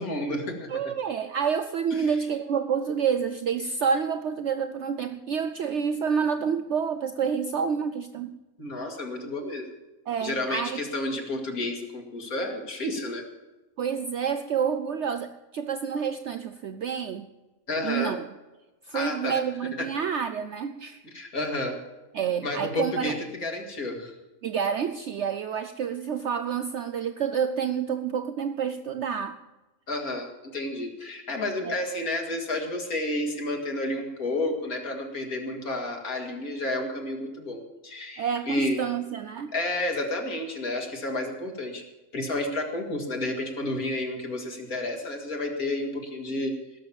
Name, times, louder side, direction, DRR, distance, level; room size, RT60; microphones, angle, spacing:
voice 1, 0.0-0.7 1.9-2.0 8.6-9.7 10.2-13.2 17.7-18.2 18.9-19.4 19.8-19.9 21.1-21.8 22.4-24.2 29.9-38.8 39.5-41.8 42.1-46.5, left 1 dB, 90° left, 2 dB, 2.8 m, -31 dB
voice 2, 0.7-8.3 10.1-10.8 13.8-17.3 17.8-18.3 18.9-21.0 22.1-23.2 24.4-29.4 30.8-30.9 31.6-31.7 38.2-39.5, right 7 dB, 60° right, 10 dB, 0.9 m, -28 dB
17.0 x 7.2 x 8.7 m, 1.1 s
omnidirectional pair, 1.5 m